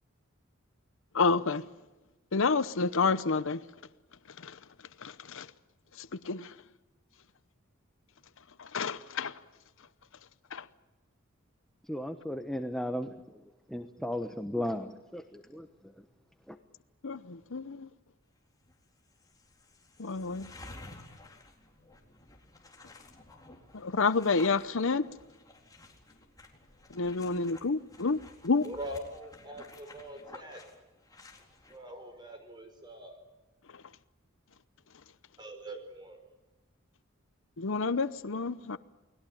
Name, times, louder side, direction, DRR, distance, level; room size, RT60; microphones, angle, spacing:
voice 1, 1.1-1.6 2.3-3.6 4.4-4.5 5.0-5.5 6.2-6.5 8.6-9.3 10.5-10.6 17.0-17.9 20.0-20.5 23.7-25.1 26.9-28.2 28.4-28.6 37.6-38.8, left 4 dB, 65° left, 0.9 m, -29 dB
voice 2, 11.8-16.0 16.5-16.6, left 1 dB, ahead, 1.1 m, -36 dB
sound 1, 18.6-18.7 19.1-31.8, left 2 dB, 20° left, 4.0 m, -53 dB
voice 3, 28.6-30.6 31.7-33.2 35.4-36.4, right 1 dB, 20° right, 5.4 m, -43 dB
29.5 x 20.5 x 8.8 m
head